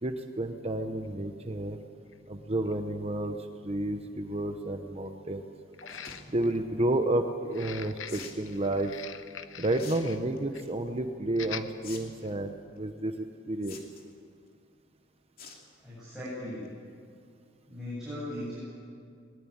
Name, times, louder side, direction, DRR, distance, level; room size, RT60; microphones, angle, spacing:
voice 1, 0.0-1.8 2.3-3.4 3.6-5.4 6.3-8.9 9.6-13.8, right 1 dB, 30° right, 6 dB, 0.9 m, -31 dB
sound 1, 1.0-1.1 2.1-2.2 2.6-2.7 5.7-6.6 7.4-10.2 10.5-10.7 11.3-11.7 12.2-12.3, left 8 dB, 70° left, 1.0 m, -44 dB
sound 2, 5.8-6.2 8.1-8.4 9.7-10.0 10.4-10.7 11.8-12.0 12.3-12.4 13.6-14.1 15.4-15.6 16.0-16.3 16.6-16.7 16.9-17.0, left 5 dB, 45° left, 3.0 m, -45 dB
voice 2, 15.8-16.7 17.7-18.6, left 1 dB, ahead, -10 dB, 7.6 m, -38 dB
21.5 x 20.0 x 8.8 m, 2.3 s
head